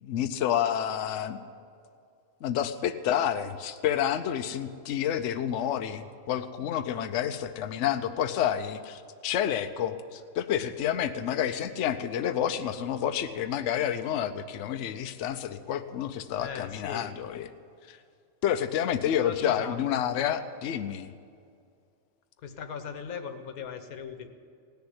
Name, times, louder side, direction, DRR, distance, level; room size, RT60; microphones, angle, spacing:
voice 1, 0.0-1.4 2.4-17.5 17.9-18.0 18.4-21.1, left 10 dB, 65° left, 9 dB, 0.9 m, -29 dB
voice 2, 16.4-17.1 19.2-19.8 22.4-24.3, left 6 dB, 90° left, 8 dB, 1.4 m, -38 dB
17.0 x 7.0 x 9.6 m, 2.3 s
omnidirectional pair, 1.5 m